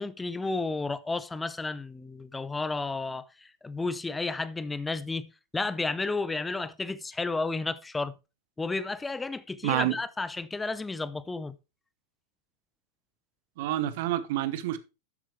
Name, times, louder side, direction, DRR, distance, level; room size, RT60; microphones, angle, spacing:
voice 1, 0.0-5.3 5.5-8.1 8.6-11.5, left 3 dB, 10° left, 0.6 m, -32 dB
voice 2, 9.6-10.0 13.6-14.8, right 13 dB, 50° right, 1.0 m, -28 dB
12.5 x 7.4 x 3.1 m
figure-of-eight pair, 90°, 0 cm